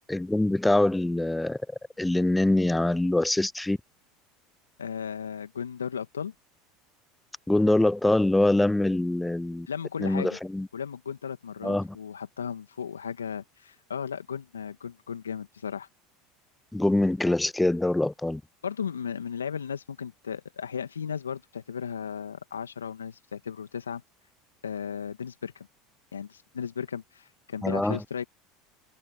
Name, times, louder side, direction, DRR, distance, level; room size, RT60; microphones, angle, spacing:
voice 1, 0.0-1.6 2.0-3.8 7.5-9.7 10.0-10.7 11.6-12.0 16.7-18.4 27.6-28.0, left 2 dB, 10° left, 0.4 m, -24 dB
voice 2, 4.8-6.3 9.7-10.4 10.7-15.9 18.6-24.0 24.6-25.7 26.1-28.2, left 7 dB, 85° left, 2.1 m, -35 dB
hypercardioid pair, 75°, 0 cm